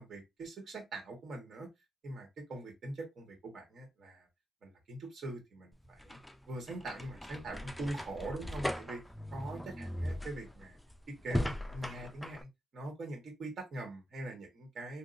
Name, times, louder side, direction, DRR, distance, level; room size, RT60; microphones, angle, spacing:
voice 1, 0.0-1.7 2.0-4.3 4.6-6.2 6.5-9.0 9.3-10.8 11.1-15.0, right 2 dB, 55° right, 1.6 m, -43 dB
sound 1, 5.7-12.4, equal, 5° left, 0.5 m, -39 dB
3.6 x 2.5 x 2.7 m
cardioid pair, 90°, 0 cm